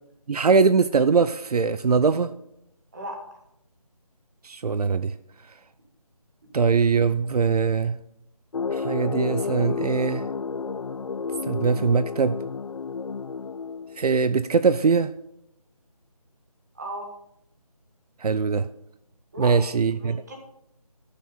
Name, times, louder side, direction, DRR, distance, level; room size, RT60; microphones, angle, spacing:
voice 1, 0.3-2.3 4.4-5.1 6.5-8.0 8.7-10.3 11.5-12.4 14.0-15.1 18.2-18.7 19.4-20.2, right 5 dB, 80° right, 14 dB, 0.5 m, -21 dB
sound 1, 8.5-14.3, left 5 dB, 65° left, 0.5 m, -31 dB
voice 2, 16.7-17.1 19.3-19.7 20.0-20.3, right 1 dB, 30° right, 1 dB, 1.7 m, -36 dB
11.0 x 6.6 x 5.2 m, 0.80 s
figure-of-eight pair, 175°, 20 cm